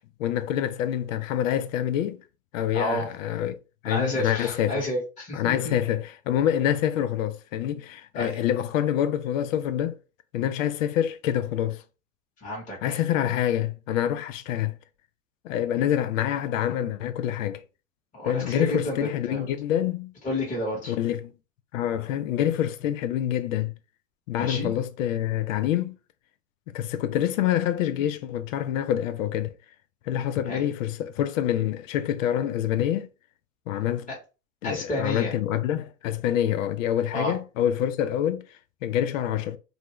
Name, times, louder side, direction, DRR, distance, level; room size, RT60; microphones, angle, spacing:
voice 1, 0.2-2.2 2.5-3.6 3.8-4.7 5.3-9.9 10.3-11.8 12.8-14.7 15.4-17.6 18.3-20.1 20.9-21.3 21.7-23.7 24.3-26.0 26.7-29.5 30.1-33.1 33.7-34.1 34.6-38.4 38.8-39.6, left 11 dB, 70° left, 0.5 m, -26 dB
voice 2, 2.7-3.1 3.8-5.7 8.1-8.4 12.4-13.0 18.1-19.5 20.2-20.9 24.4-24.7 30.5-30.6 34.1-34.2 34.6-35.4 37.1-37.4, left 1 dB, 20° left, 1.2 m, -31 dB
2.6 x 2.3 x 3.1 m
hypercardioid pair, 100°, 41 cm